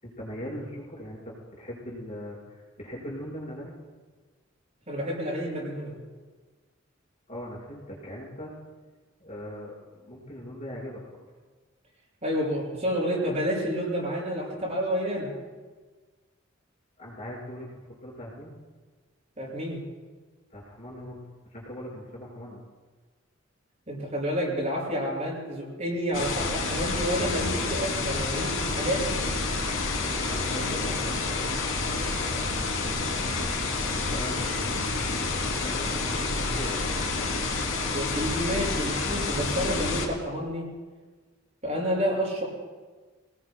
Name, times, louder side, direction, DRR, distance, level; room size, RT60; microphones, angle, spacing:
voice 1, 0.0-3.7 7.3-8.5 9.2-11.0 17.0-18.5 20.5-21.2 21.4-22.6 30.3-34.9 35.2-36.8, equal, 35° left, -5 dB, 5.4 m, -40 dB
voice 2, 4.9-5.9 12.2-15.3 19.4-19.8 23.9-29.2 37.9-40.6 41.6-42.4, equal, 35° right, -4 dB, 6.5 m, -29 dB
sound 1, 26.1-40.1, left 3 dB, 80° left, 3.2 m, -29 dB
28.0 x 19.0 x 2.3 m, 1.4 s
head